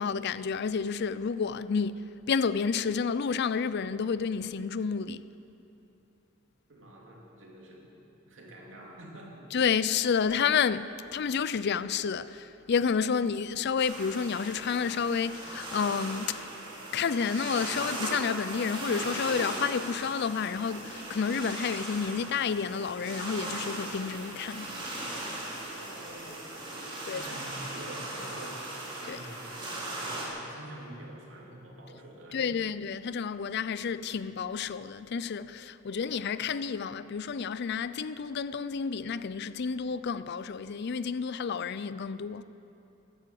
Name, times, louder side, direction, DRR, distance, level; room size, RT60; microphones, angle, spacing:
voice 1, 0.0-5.2 9.5-16.5 16.9-24.7 27.0-27.3 29.1-29.2 32.3-42.4, left 6 dB, 55° left, 0.4 m, -30 dB
voice 2, 6.7-9.5 25.7-26.7 27.0-29.8 30.1-32.7, right 1 dB, 70° right, 3.0 m, -47 dB
sound 1, 13.8-30.3, right 2 dB, 25° right, 3.1 m, -38 dB
14.5 x 11.5 x 7.7 m
head